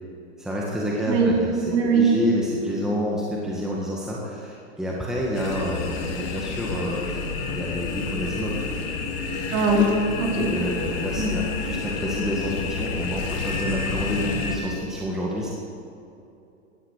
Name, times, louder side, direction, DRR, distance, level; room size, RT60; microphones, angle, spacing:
voice 1, 0.4-8.6 10.5-15.5, equal, ahead, -4 dB, 1.8 m, -29 dB
voice 2, 1.7-2.0 9.5-10.5 11.2-11.3, right 2 dB, 35° right, -2 dB, 4.1 m, -21 dB
sound 1, 5.3-14.6, left 4 dB, 45° left, 2.9 m, -30 dB
15.5 x 12.0 x 6.5 m, 2.7 s
hypercardioid pair, 135°, 38 cm